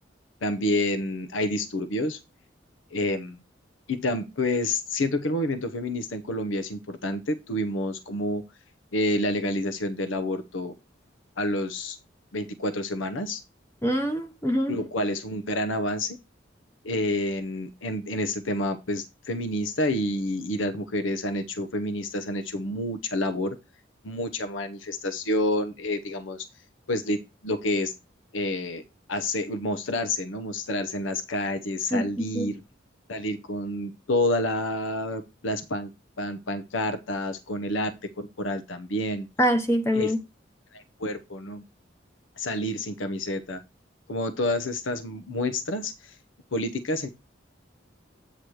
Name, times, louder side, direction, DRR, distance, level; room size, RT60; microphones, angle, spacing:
voice 1, 0.4-2.2 2.9-3.4 3.9-8.4 8.9-10.7 11.4-12.0 12.3-13.4 14.7-16.2 16.8-23.6 24.0-26.5 26.9-27.2 27.4-27.9 28.3-28.8 29.1-32.6 33.1-35.9 36.2-39.3 39.9-40.1 40.7-41.6 42.4-43.6 44.1-46.1 46.5-47.1, left 1 dB, 90° left, 0.8 m, -28 dB
voice 2, 13.8-14.8 31.9-32.0 32.3-32.5 39.4-40.2, equal, 15° left, 0.8 m, -24 dB
8.4 x 3.0 x 6.2 m
head